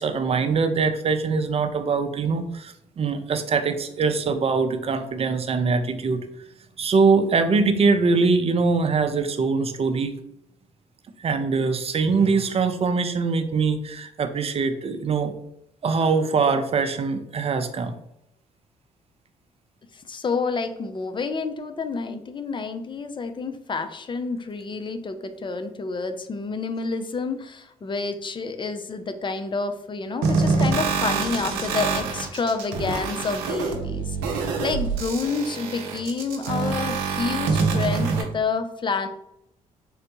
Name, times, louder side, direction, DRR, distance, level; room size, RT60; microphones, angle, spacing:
voice 1, 0.0-6.3 6.8-10.1 11.2-15.3 15.8-18.0, right 4 dB, 35° right, 7 dB, 0.5 m, -23 dB
voice 2, 19.9-39.1, left 4 dB, 30° left, 9 dB, 0.4 m, -29 dB
sound 1, 30.2-38.2, right 4 dB, 85° right, 0.5 m, -25 dB
3.8 x 2.1 x 2.9 m, 0.81 s
hypercardioid pair, 55°, 16 cm